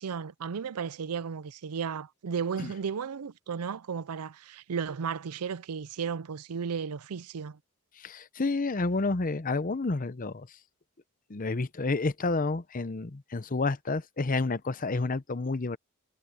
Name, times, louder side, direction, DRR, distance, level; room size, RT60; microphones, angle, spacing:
voice 1, 0.0-7.6, right 6 dB, 85° right, 0.5 m, -34 dB
voice 2, 8.0-10.5 11.3-15.8, left 3 dB, 40° left, 0.7 m, -30 dB
head